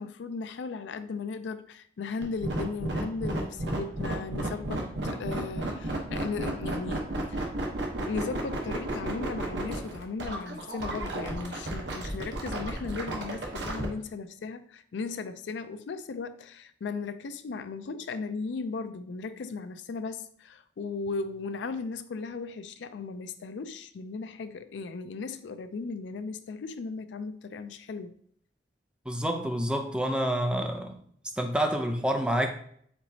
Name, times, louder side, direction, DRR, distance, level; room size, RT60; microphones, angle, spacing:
voice 1, 0.0-7.5 8.0-28.1, left 4 dB, 80° left, 0.4 m, -36 dB
sound 1, 2.2-13.9, right 1 dB, 80° right, 1.0 m, -33 dB
voice 2, 29.1-31.0 31.4-32.5, right 1 dB, 5° right, 0.5 m, -28 dB
4.6 x 3.9 x 2.7 m
head